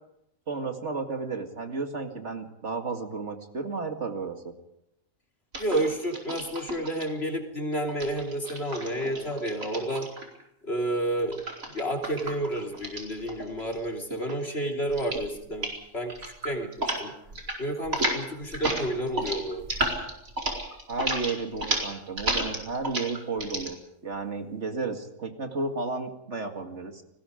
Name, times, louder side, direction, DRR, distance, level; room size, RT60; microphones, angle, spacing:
voice 1, 0.5-4.5 20.9-27.0, right 4 dB, 55° right, 4 dB, 2.4 m, -33 dB
sound 1, 5.5-7.0 7.9-10.4 11.3-13.8 14.1-14.5 14.9-15.3 15.5-15.8 16.1-17.0 17.3-17.6 17.8-23.7, right 1 dB, 80° right, 4.9 m, -32 dB
voice 2, 5.6-10.1 10.6-11.4 11.7-17.1 17.6-19.6, right 1 dB, 50° left, 2 dB, 3.4 m, -30 dB
29.5 x 20.0 x 5.1 m, 0.82 s
omnidirectional pair, 1.4 m